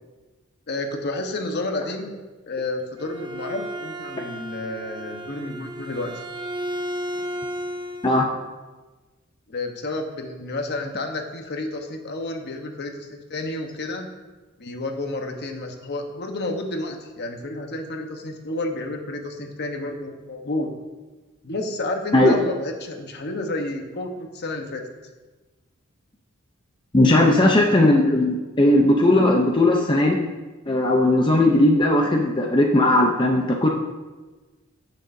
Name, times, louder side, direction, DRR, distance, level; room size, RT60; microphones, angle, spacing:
voice 1, 0.7-2.1 2.5-6.1 9.5-14.1 14.6-20.7 21.4-24.8 27.2-27.6, left 2 dB, 50° left, 3 dB, 1.1 m, -30 dB
Bowed string instrument, 2.8-8.3, equal, 20° right, 0.6 m, -33 dB
voice 2, 26.9-30.2 30.7-33.7, left 1 dB, 20° left, 0 dB, 0.7 m, -17 dB
16.0 x 6.5 x 2.7 m, 1.2 s
head